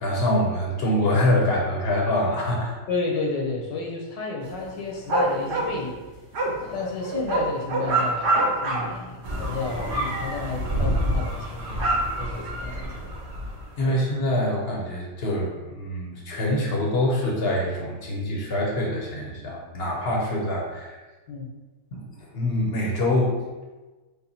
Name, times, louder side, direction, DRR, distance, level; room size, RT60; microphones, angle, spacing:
voice 1, 0.0-2.8 13.8-21.0 21.9-22.0 22.3-23.4, left 1 dB, 50° left, -2 dB, 0.8 m, -25 dB
voice 2, 2.9-6.0 6.7-11.9 12.2-13.1 13.9-14.0 21.3-21.5, left 3 dB, 85° left, 0 dB, 1.5 m, -31 dB
sound 1, 4.5-9.0 9.3-9.8 10.4-10.5 10.8-10.9 11.3-13.2 13.8-13.9, right 2 dB, 55° right, 0.8 m, -26 dB
sound 2, 9.2-13.8, equal, 75° right, 1.6 m, -29 dB
5.3 x 2.2 x 4.2 m, 1.2 s
omnidirectional pair, 1.9 m